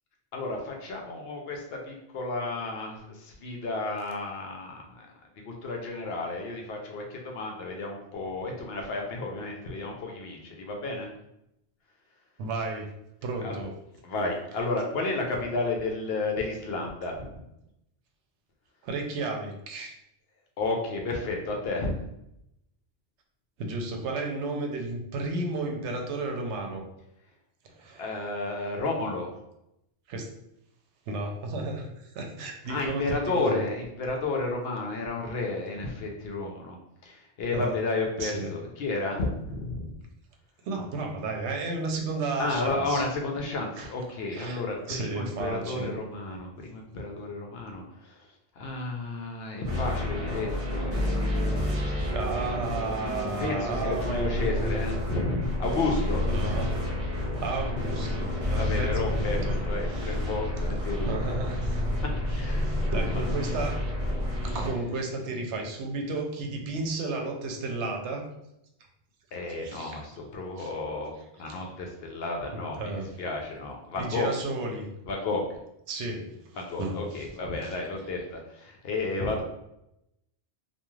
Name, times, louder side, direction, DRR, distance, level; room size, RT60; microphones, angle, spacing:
voice 1, 0.3-5.1 5.4-11.1 13.4-13.6 14.0-17.4 20.6-21.9 28.0-29.3 32.7-36.8 37.0-40.0 42.4-48.3 48.6-51.7 53.0-56.6 58.5-61.4 62.0-62.7 63.1-63.2 64.5-64.6 69.3-74.3 75.1-75.4 76.6-79.4, left 3 dB, 70° left, 1 dB, 0.8 m, -32 dB
voice 2, 12.4-12.9 13.2-13.7 18.8-19.9 23.6-26.8 27.6-28.0 30.1-30.3 31.1-33.6 37.5-37.8 38.2-38.6 40.6-43.0 43.8-43.9 44.3-44.6 44.9-46.0 52.1-54.9 56.3-56.9 57.4-59.6 59.9-60.3 60.9-61.8 62.3-62.4 62.9-63.8 64.4-68.3 69.6-70.0 70.6-70.7 71.5-71.7 72.5-73.1 74.0-74.9 75.9-77.3 77.6-77.8, right 3 dB, 80° right, 3 dB, 0.9 m, -33 dB
sound 1, 49.6-64.7, left 1 dB, 35° right, 0.8 m, -29 dB
2.3 x 2.3 x 3.0 m, 0.83 s
omnidirectional pair, 1.1 m